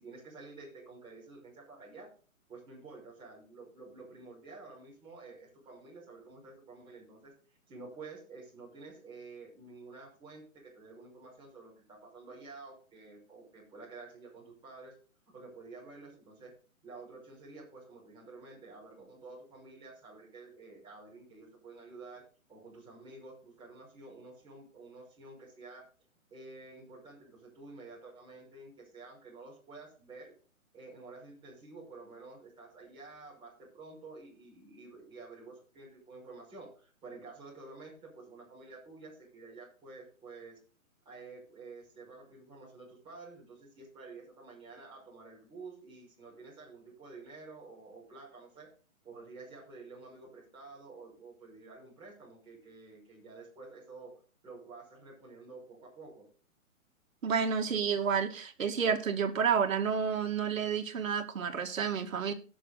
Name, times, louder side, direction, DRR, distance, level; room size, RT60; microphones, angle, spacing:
voice 1, 0.0-2.1 2.5-15.0 15.3-16.5 16.8-25.9 26.3-30.3 30.7-40.6 41.0-48.7 49.0-56.3, right 3 dB, 10° right, -5 dB, 5.9 m, -50 dB
voice 2, 57.2-62.3, right 6 dB, 70° right, 6 dB, 2.2 m, -30 dB
17.5 x 6.5 x 4.0 m, 0.37 s
hypercardioid pair, 160°, 42 cm